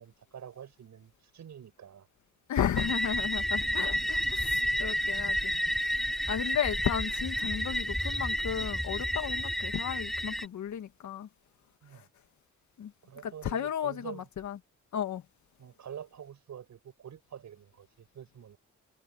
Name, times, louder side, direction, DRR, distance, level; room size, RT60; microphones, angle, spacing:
voice 1, 0.0-2.1 6.1-6.2 11.8-12.1 13.0-14.3 15.6-18.6, right 9 dB, 70° right, 7.9 m, -47 dB
voice 2, 2.5-5.5 6.3-11.3 11.9-12.0 12.8-12.9 13.2-14.6 14.9-15.2, left 9 dB, 75° left, 2.0 m, -34 dB
sound 1, 2.8-10.5, equal, ahead, 2.7 m, -31 dB
cardioid pair, 105°, 30 cm